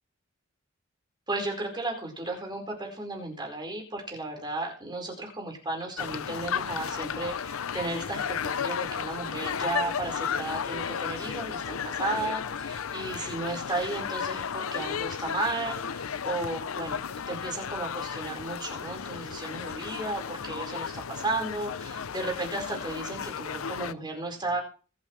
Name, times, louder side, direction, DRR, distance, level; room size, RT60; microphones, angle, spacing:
voice 1, 1.3-24.6, right 2 dB, 20° right, 1 dB, 4.6 m, -34 dB
sound 1, 6.0-23.9, left 7 dB, 90° left, 0.6 m, -34 dB
24.5 x 8.6 x 3.2 m, 0.37 s
head